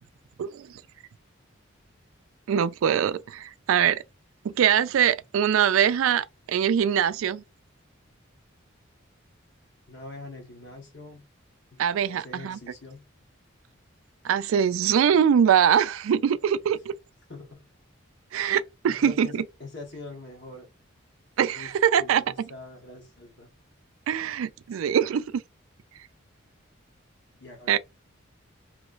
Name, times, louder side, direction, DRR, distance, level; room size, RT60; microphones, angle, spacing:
voice 1, 0.4-0.8 2.5-4.0 4.4-7.4 11.8-12.6 14.2-16.8 18.3-19.4 21.4-22.2 24.1-25.4 27.7-27.8, right 8 dB, 80° right, 0.3 m, -23 dB
voice 2, 9.9-11.3 11.7-13.1 17.3-17.7 18.9-20.7 21.5-21.7 22.0-23.5 27.3-27.8, left 2 dB, 55° left, 1.3 m, -43 dB
3.0 x 3.0 x 2.5 m
head